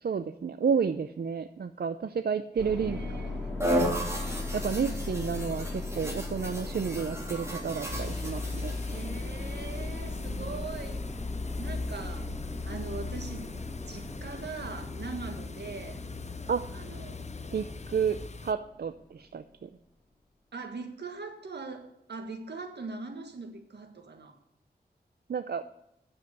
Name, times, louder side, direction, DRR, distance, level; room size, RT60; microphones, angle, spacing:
voice 1, 0.0-3.0 3.6-4.0 4.5-8.7 10.3-10.5 16.5-16.6 17.5-18.2 18.4-19.7 25.3-25.6, right 6 dB, 65° right, 10 dB, 0.5 m, -31 dB
voice 2, 2.5-3.5 4.7-5.0 8.8-11.1 11.6-12.3 12.6-13.5 13.9-16.0 16.7-17.3 20.5-24.4, right 3 dB, 85° right, 5 dB, 1.6 m, -41 dB
sound 1, 2.6-19.0, left 2 dB, 10° left, 2.7 m, -39 dB
sound 2, 3.6-9.0, equal, 15° right, 2.7 m, -34 dB
sound 3, 7.9-18.5, left 4 dB, 40° left, 0.6 m, -38 dB
9.3 x 7.5 x 6.7 m, 0.82 s
wide cardioid pair, 95°, 17 cm